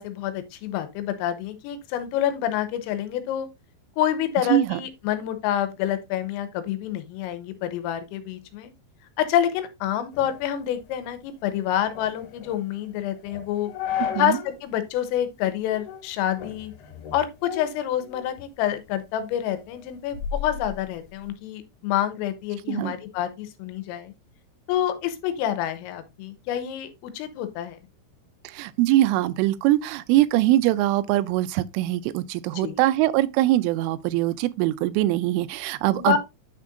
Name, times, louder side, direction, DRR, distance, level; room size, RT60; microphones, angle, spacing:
voice 1, 0.0-3.5 4.0-8.7 9.2-13.7 14.2-16.7 17.1-24.1 24.7-27.8 32.6-32.8 36.0-36.2, left 11 dB, 90° left, 3.5 m, -27 dB
voice 2, 4.5-4.8 14.0-14.4 22.7-22.9 28.4-36.2, right 15 dB, 85° right, 2.9 m, -22 dB
sound 1, 10.1-14.6 15.0-15.1 15.7-16.1 16.4-18.5 18.9-21.3, left 8 dB, 70° left, 3.6 m, -36 dB
9.6 x 6.5 x 2.5 m
omnidirectional pair, 5.9 m